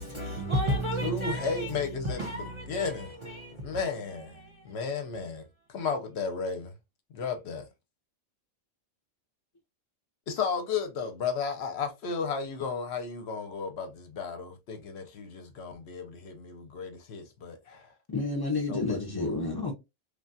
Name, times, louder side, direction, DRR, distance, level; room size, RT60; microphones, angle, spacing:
voice 1, 0.0-1.8 2.0-3.9 4.4-4.6, right 1 dB, 30° right, 0.6 m, -33 dB
voice 2, 1.0-3.2 3.6-4.4 4.6-6.7 7.1-7.7 10.3-17.9 18.7-19.4, left 5 dB, 65° left, 0.8 m, -34 dB
voice 3, 18.1-19.7, left 3 dB, 40° left, 0.3 m, -30 dB
3.2 x 2.2 x 2.5 m
omnidirectional pair, 1.3 m